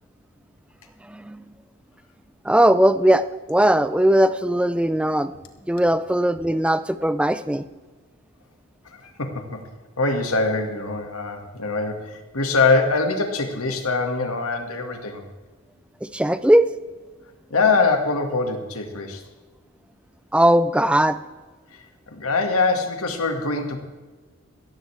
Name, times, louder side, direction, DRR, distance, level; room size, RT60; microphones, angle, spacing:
voice 1, 1.1-1.4 2.4-5.3 5.7-7.6 16.0-16.7 20.3-21.2, right 1 dB, 5° right, 12 dB, 0.4 m, -19 dB
voice 2, 8.9-9.6 10.0-15.3 17.5-19.2 21.7-21.9 22.1-23.8, left 3 dB, 80° left, 4 dB, 1.9 m, -23 dB
15.5 x 14.5 x 3.4 m, 1.3 s
head